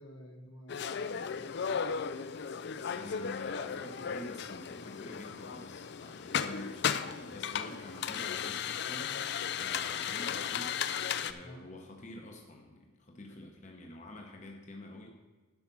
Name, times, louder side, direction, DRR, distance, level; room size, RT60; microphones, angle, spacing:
voice 1, 0.0-2.0 11.4-11.7 13.1-13.4, equal, 70° left, 3 dB, 1.4 m, -52 dB
sound 1, 0.7-11.3, left 7 dB, 55° left, 0.4 m, -35 dB
voice 2, 3.0-9.2 9.6-10.8 11.2-15.1, left 1 dB, 35° left, 1 dB, 1.0 m, -47 dB
11.0 x 5.8 x 5.9 m, 1.3 s
head